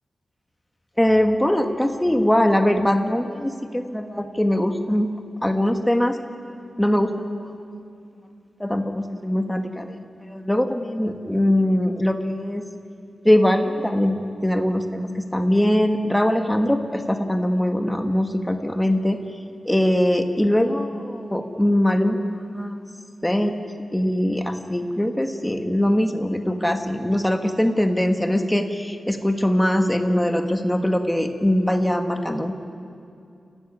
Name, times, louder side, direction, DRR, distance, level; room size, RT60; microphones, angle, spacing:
voice 1, 1.0-5.1 5.4-6.2 6.8-7.6 8.6-12.6 13.2-19.2 19.6-22.9 23.2-23.5 23.9-32.5, left 1 dB, 5° left, 5 dB, 1.6 m, -22 dB
29.0 x 16.0 x 9.8 m, 2.5 s
wide cardioid pair, 155°, 0 cm